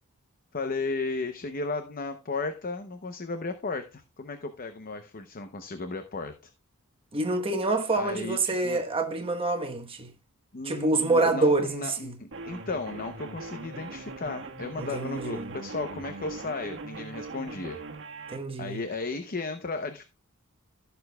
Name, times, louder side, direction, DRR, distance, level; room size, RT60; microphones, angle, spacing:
voice 1, 0.5-6.3 7.9-8.8 10.5-17.8 18.6-20.0, left 3 dB, 40° left, 0.7 m, -34 dB
voice 2, 7.1-10.1 10.6-12.1 14.8-15.5 18.3-18.8, right 2 dB, 25° right, 1.1 m, -27 dB
sound 1, 12.3-18.4, right 3 dB, 60° right, 1.4 m, -40 dB
15.0 x 6.9 x 2.3 m
head